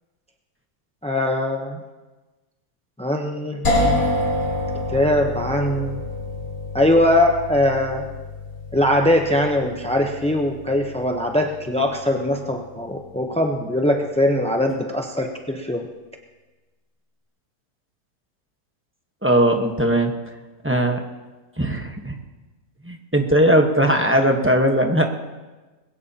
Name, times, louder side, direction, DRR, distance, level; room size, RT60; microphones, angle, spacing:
voice 1, 1.0-1.8 3.0-3.7 4.9-6.0 6.7-8.1 8.7-15.9, left 1 dB, 10° left, 2 dB, 0.4 m, -21 dB
sound 1, 3.6-13.4, left 1 dB, 65° left, 3.5 m, -28 dB
voice 2, 19.2-20.1 20.6-21.0 21.6-22.2 22.8-25.1, right 1 dB, 10° right, 3 dB, 1.0 m, -19 dB
21.0 x 17.0 x 2.9 m, 1.2 s
omnidirectional pair, 1.7 m